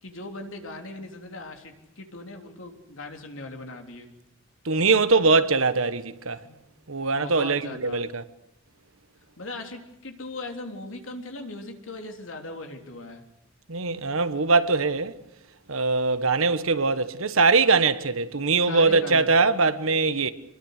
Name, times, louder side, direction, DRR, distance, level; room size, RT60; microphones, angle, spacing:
voice 1, 0.0-4.1 6.4-6.6 7.1-8.0 9.4-13.2 18.7-19.3, left 2 dB, 70° left, 3.5 m, -39 dB
voice 2, 4.6-6.4 6.9-8.2 13.7-15.1 15.7-20.3, right 4 dB, 85° right, 1.4 m, -22 dB
25.5 x 22.5 x 6.8 m
head